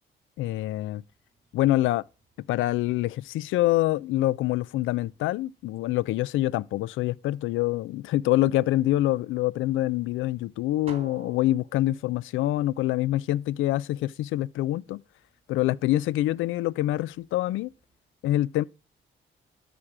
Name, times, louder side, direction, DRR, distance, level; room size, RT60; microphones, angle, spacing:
voice 1, 0.4-1.0 1.5-2.0 2.5-15.0 15.5-17.7 18.2-18.6, left 15 dB, 85° left, 0.4 m, -25 dB
sound 1, 0.6-18.0, right 4 dB, 30° right, 2.9 m, -57 dB
13.0 x 5.1 x 6.0 m
cardioid pair, 90°, 20 cm